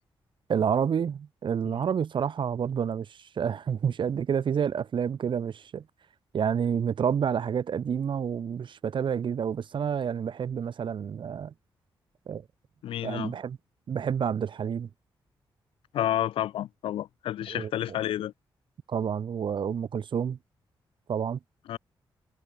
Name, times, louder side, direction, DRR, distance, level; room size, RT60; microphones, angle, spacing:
voice 1, 0.5-5.8 6.3-11.5 12.3-12.4 13.0-13.6 13.9-14.9 17.5-17.7 18.9-20.4 21.1-21.4, right 7 dB, 65° right, 4.2 m, -29 dB
voice 2, 12.8-13.3 15.9-18.3 21.7-21.8, left 12 dB, 90° left, 1.2 m, -30 dB
cardioid pair, 75°, 9 cm